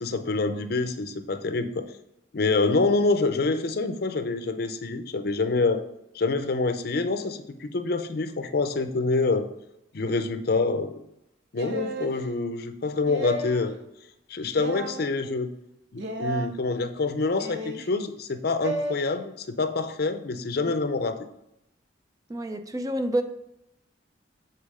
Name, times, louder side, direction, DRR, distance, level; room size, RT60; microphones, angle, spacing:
voice 1, 0.0-1.9 2.3-5.8 6.1-9.5 9.9-11.0 11.5-13.7 14.3-15.5 15.9-21.2, left 3 dB, 60° left, 9 dB, 0.6 m, -26 dB
sound 1, 11.6-12.2 13.0-13.7 14.6-15.0 16.0-16.5 17.4-17.9 18.6-19.0, right 2 dB, 75° right, 0.8 m, -32 dB
voice 2, 22.3-23.2, right 1 dB, 20° right, 8 dB, 0.4 m, -28 dB
7.6 x 3.9 x 4.9 m, 0.83 s
head